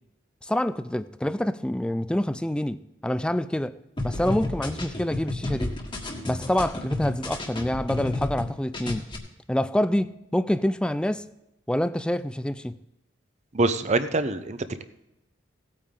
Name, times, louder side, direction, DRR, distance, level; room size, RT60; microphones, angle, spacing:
voice 1, 0.4-3.7 4.0-5.7 6.3-9.1 9.5-11.3 11.7-12.8, left 1 dB, 5° left, 14 dB, 0.3 m, -26 dB
sound 1, 4.0-8.5 8.7-9.2, left 2 dB, 25° left, 1.6 m, -31 dB
voice 2, 13.5-14.8, right 2 dB, 35° right, 11 dB, 0.7 m, -25 dB
17.5 x 8.7 x 3.7 m, 0.90 s
head